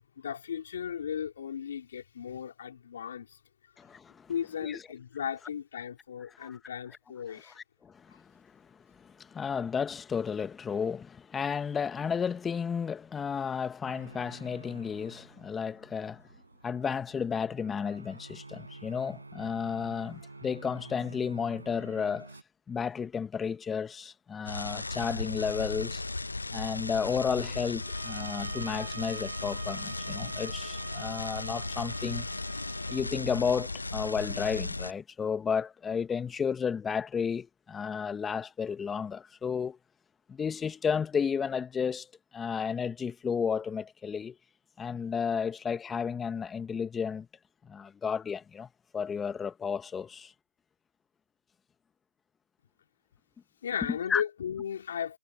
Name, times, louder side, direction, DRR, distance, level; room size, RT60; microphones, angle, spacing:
voice 1, 0.2-3.3 4.3-7.6 53.6-55.2, left 8 dB, 55° left, 4.3 m, -36 dB
voice 2, 3.8-4.3 4.6-4.8 6.4-6.6 7.8-8.6 9.0-16.2 16.6-22.3 22.7-26.0 26.5-32.3 32.9-39.8 40.3-42.1 42.3-44.3 44.8-47.3 47.6-48.7 48.9-50.3 54.1-54.2, left 6 dB, 10° left, 1.3 m, -32 dB
sound 1, 13.9-22.4, right 2 dB, 90° right, 7.0 m, -49 dB
sound 2, 24.4-34.9, left 2 dB, 85° left, 0.9 m, -36 dB
sound 3, 27.7-33.1, right 8 dB, 50° right, 1.8 m, -46 dB
figure-of-eight pair, 140°, 0 cm